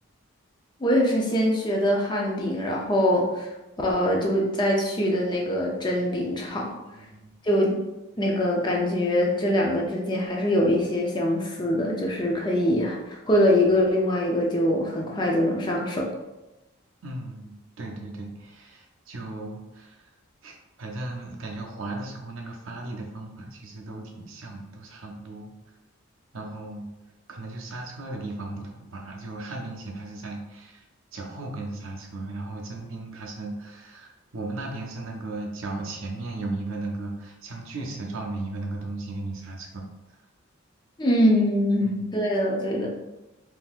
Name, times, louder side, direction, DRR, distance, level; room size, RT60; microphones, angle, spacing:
voice 1, 0.8-3.5 3.8-6.7 7.4-7.8 8.2-16.1 41.0-42.9, left 1 dB, 20° left, -1 dB, 0.4 m, -23 dB
voice 2, 7.0-7.3 17.0-20.1 20.4-25.5 26.3-26.9 27.3-30.8 31.1-39.9 41.8-42.0, right 2 dB, 70° right, 1 dB, 0.6 m, -36 dB
3.8 x 2.7 x 2.4 m, 1.0 s
head